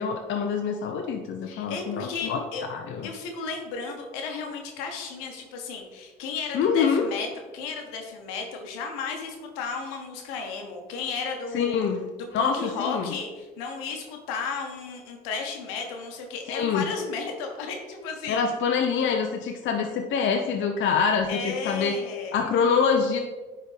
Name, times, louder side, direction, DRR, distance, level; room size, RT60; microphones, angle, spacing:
voice 1, 0.0-2.4 2.7-3.1 6.5-7.1 11.5-12.1 12.3-13.1 16.5-16.9 18.3-22.0 22.3-23.2, left 6 dB, 65° left, 4 dB, 0.6 m, -25 dB
voice 2, 1.4-2.6 3.0-7.3 7.5-11.8 12.2-18.4 21.3-22.4, left 5 dB, 85° left, 3 dB, 1.1 m, -34 dB
10.0 x 3.7 x 3.3 m, 1.3 s
supercardioid pair, 60°, 21 cm